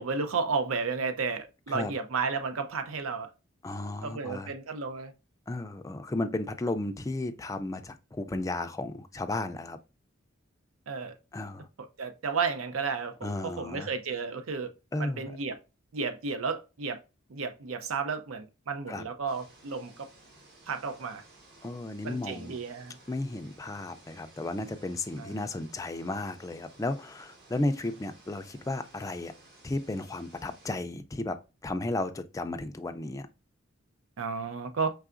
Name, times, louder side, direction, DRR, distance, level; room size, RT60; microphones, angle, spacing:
voice 1, 0.0-3.3 4.0-5.1 10.9-11.1 11.8-14.7 15.0-15.6 15.9-17.0 17.3-20.1 20.7-21.2 22.0-23.0 25.2-25.3 34.2-34.9, right 5 dB, 85° right, 0.5 m, -32 dB
voice 2, 3.6-4.5 5.5-9.8 11.3-11.7 13.2-13.9 14.9-15.3 18.9-19.0 21.6-22.6 23.1-29.3 29.6-33.3, left 2 dB, 15° left, 0.3 m, -34 dB
sound 1, 19.3-30.7, right 2 dB, 55° right, 1.3 m, -56 dB
4.7 x 3.3 x 2.5 m
head